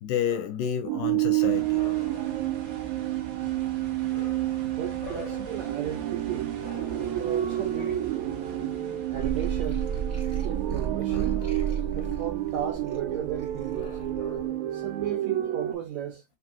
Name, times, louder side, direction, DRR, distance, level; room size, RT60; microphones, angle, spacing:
voice 1, 0.0-2.4 4.1-4.4 5.0-5.3 6.7-7.7 8.4-8.6 11.1-12.0 13.8-14.7, left 9 dB, 80° left, 2.0 m, -35 dB
sound 1, 0.9-15.7, right 14 dB, 90° right, 1.6 m, -30 dB
sound 2, 1.4-15.2, right 5 dB, 45° right, 1.9 m, -45 dB
voice 2, 4.6-6.6 7.1-8.1 9.1-9.9 10.4-11.5 11.9-14.0 14.7-16.2, right 10 dB, 75° right, 1.7 m, -35 dB
sound 3, 9.1-14.5, right 7 dB, 20° left, 0.4 m, -33 dB
5.9 x 2.8 x 2.9 m
omnidirectional pair, 4.2 m